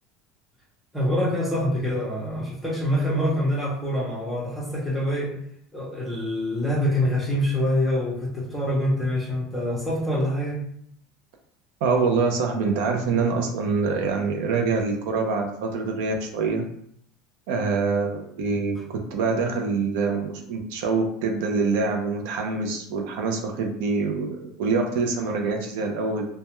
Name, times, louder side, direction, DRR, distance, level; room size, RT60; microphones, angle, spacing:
voice 1, 0.9-5.3 5.7-10.6, equal, ahead, -6 dB, 0.6 m, -25 dB
voice 2, 11.8-16.6 17.5-26.2, right 4 dB, 70° right, 2 dB, 0.4 m, -25 dB
2.2 x 2.1 x 2.9 m, 0.68 s
cardioid pair, 170°, 0 cm